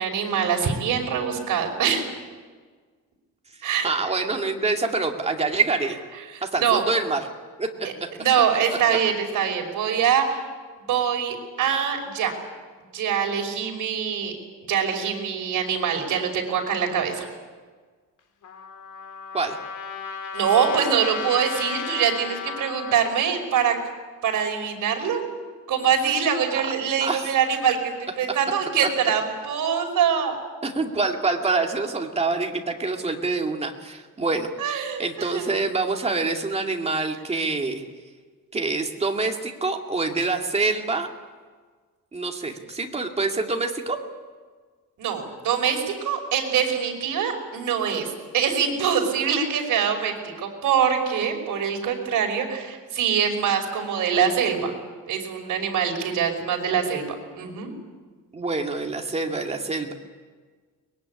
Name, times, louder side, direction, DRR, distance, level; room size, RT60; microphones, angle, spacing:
voice 1, 0.0-2.0 3.6-3.9 6.3-6.8 7.8-7.9 8.2-10.4 10.9-12.3 12.9-14.4 14.6-17.3 20.3-23.8 24.2-25.2 25.7-30.3 34.6-35.5 45.0-54.7 55.1-57.0 57.3-57.7, right 7 dB, 60° right, 2 dB, 5.6 m, -24 dB
voice 2, 3.8-6.0 6.4-7.2 7.6-8.1 19.3-19.6 26.5-26.6 27.0-27.3 30.6-34.5 35.0-37.8 38.5-41.1 42.1-44.0 58.3-59.9, right 3 dB, 20° right, 2 dB, 2.5 m, -26 dB
Trumpet, 18.4-23.1, left 6 dB, 60° left, 3.7 m, -34 dB
23.0 x 21.5 x 9.8 m, 1.5 s
cardioid pair, 150°, 35 cm